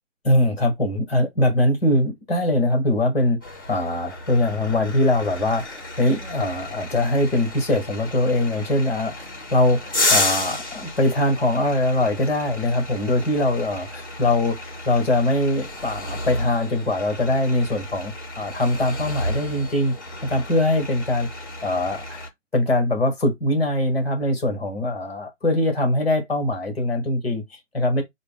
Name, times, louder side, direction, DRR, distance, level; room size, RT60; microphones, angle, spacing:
voice 1, 0.2-3.4 3.7-19.9 20.2-21.3 21.6-28.0, left 1 dB, ahead, 1.0 m, -22 dB
sound 1, 3.4-22.3, left 2 dB, 20° left, 0.6 m, -31 dB
4.6 x 2.5 x 3.7 m
hypercardioid pair, 170°, 37 cm